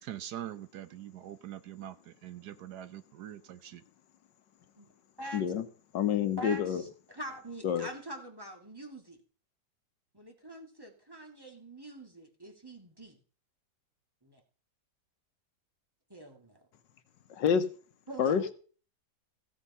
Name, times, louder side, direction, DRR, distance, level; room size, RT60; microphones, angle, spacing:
voice 1, 0.0-3.8, right 11 dB, 70° right, 14 dB, 1.2 m, -43 dB
voice 2, 5.3-5.6 5.9-6.8 7.6-7.9 17.3-17.6 18.2-18.5, left 8 dB, 85° left, 11 dB, 1.7 m, -28 dB
voice 3, 6.4-9.2 10.1-13.2 14.2-14.4 16.1-16.6 18.1-18.5, right 1 dB, 15° right, 3 dB, 2.1 m, -44 dB
15.5 x 7.3 x 5.5 m, 0.40 s
omnidirectional pair, 1.9 m